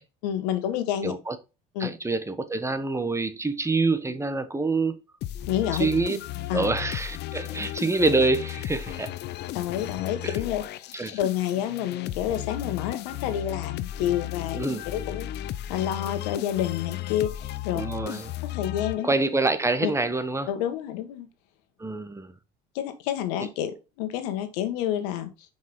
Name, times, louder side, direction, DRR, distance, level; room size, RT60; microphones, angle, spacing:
voice 1, 0.2-1.1 1.7-1.9 5.5-5.9 6.5-6.7 9.5-10.9 11.2-14.6 14.9-17.8 18.4-19.1 19.8-19.9 20.5-21.3 22.7-25.3, left 11 dB, 80° left, 1.5 m, -29 dB
voice 2, 1.0-1.4 1.8-5.0 5.8-6.2 6.5-9.2 10.2-10.3 10.9-11.2 14.5-14.8 17.7-18.4 19.0-20.5 21.8-22.3, right 3 dB, 15° right, 1.1 m, -26 dB
sound 1, 5.2-19.5, left 14 dB, 55° left, 0.6 m, -35 dB
5.8 x 5.2 x 3.7 m
supercardioid pair, 80°, 21 cm